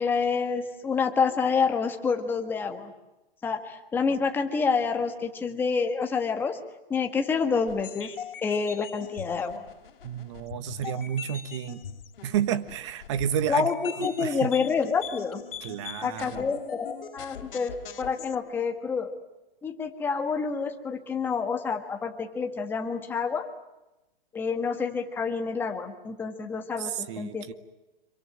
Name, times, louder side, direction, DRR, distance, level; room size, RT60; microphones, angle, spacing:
voice 1, 0.0-2.9 3.4-6.6 6.9-8.1 8.4-9.6 13.5-15.4 16.0-19.2 19.6-23.5 24.3-27.5, left 5 dB, 5° left, 5 dB, 1.5 m, -28 dB
sound 1, 7.7-18.4, left 8 dB, 70° left, 3.5 m, -42 dB
voice 2, 10.0-11.8 12.2-13.7 14.0-14.5 15.6-16.5 26.8-27.5, right 9 dB, 30° right, 14 dB, 1.3 m, -31 dB
26.5 x 24.5 x 9.1 m, 0.98 s
hypercardioid pair, 170°, 29 cm